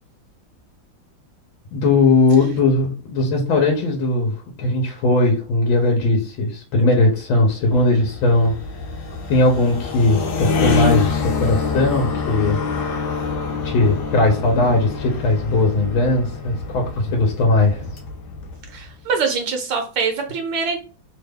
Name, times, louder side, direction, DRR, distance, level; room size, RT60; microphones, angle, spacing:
voice 1, 1.7-8.5 9.3-13.1 13.6-18.0, left 2 dB, 85° left, 1 dB, 1.4 m, -19 dB
sound 1, 7.4-18.9, left 5 dB, 65° left, 1.2 m, -26 dB
voice 2, 18.7-20.8, right 5 dB, 75° right, 3 dB, 1.3 m, -24 dB
3.4 x 2.2 x 3.3 m, 0.37 s
omnidirectional pair, 2.1 m